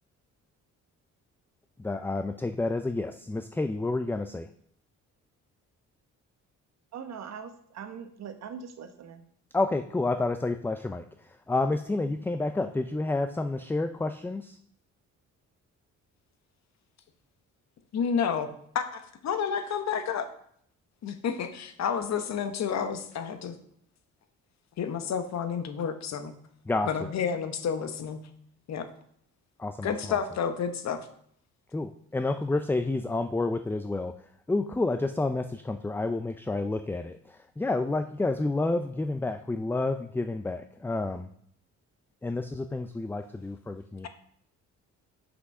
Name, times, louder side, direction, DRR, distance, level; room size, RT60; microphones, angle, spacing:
voice 1, 1.8-4.5 9.5-11.0 11.5-14.6 26.7-27.1 29.6-30.2 31.7-34.1 34.5-41.3 42.2-44.1, left 2 dB, 5° left, 8 dB, 0.4 m, -29 dB
voice 2, 6.9-9.2, right 7 dB, 60° right, 7 dB, 1.1 m, -41 dB
voice 3, 17.9-18.5 18.7-20.3 21.0-23.6 24.8-26.3 26.8-28.2 28.7-28.9 29.8-31.1, left 7 dB, 60° left, 9 dB, 1.1 m, -30 dB
6.2 x 6.0 x 5.4 m, 0.65 s
cardioid pair, 90°, 30 cm